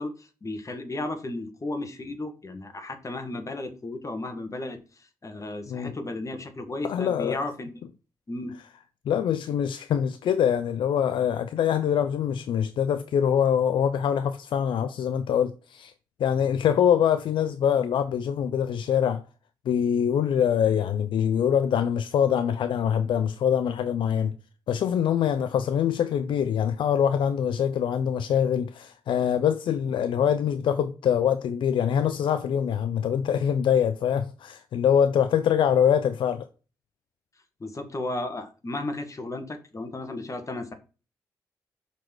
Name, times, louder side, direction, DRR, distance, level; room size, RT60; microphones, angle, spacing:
voice 1, 0.0-4.8 5.2-7.7 8.3-8.5 37.6-40.7, left 2 dB, 40° left, 1.8 m, -34 dB
voice 2, 6.8-7.4 9.1-15.9 16.2-19.2 19.7-24.3 24.7-36.5, left 8 dB, 75° left, 0.4 m, -24 dB
6.0 x 4.2 x 4.6 m
supercardioid pair, 45°, 9 cm